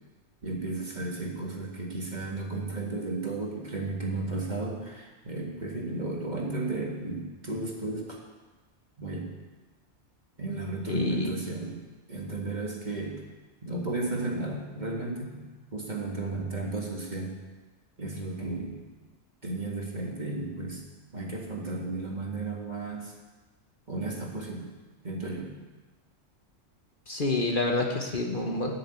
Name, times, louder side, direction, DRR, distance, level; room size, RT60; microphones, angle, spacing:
voice 1, 0.4-8.2 9.0-9.3 10.4-11.8 12.1-13.2 13.6-17.4 18.0-18.8 19.4-20.8 21.1-23.1 23.9-24.7 25.0-25.5, right 2 dB, 35° right, -1 dB, 2.0 m, -34 dB
voice 2, 10.9-11.3 27.1-28.8, left 2 dB, 45° left, 1 dB, 1.3 m, -28 dB
12.0 x 6.8 x 8.9 m, 1.2 s
omnidirectional pair, 1.3 m